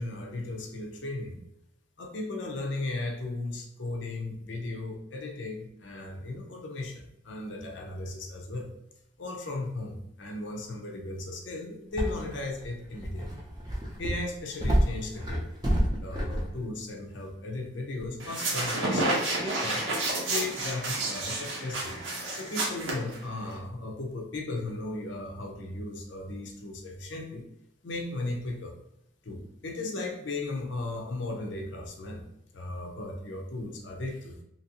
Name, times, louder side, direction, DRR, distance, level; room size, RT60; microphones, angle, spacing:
voice 1, 0.0-1.4 2.0-8.7 9.2-13.5 14.0-15.5 16.0-19.9 20.3-22.0 22.3-27.5 27.8-28.8 29.2-32.3 32.5-34.4, left 2 dB, 70° left, 3 dB, 0.6 m, -36 dB
sound 1, 12.0-16.5 18.0-18.1, equal, 20° right, 0.5 m, -28 dB
sound 2, 18.2-23.6, right 2 dB, 80° right, 0.8 m, -30 dB
2.9 x 2.6 x 2.8 m, 0.80 s
head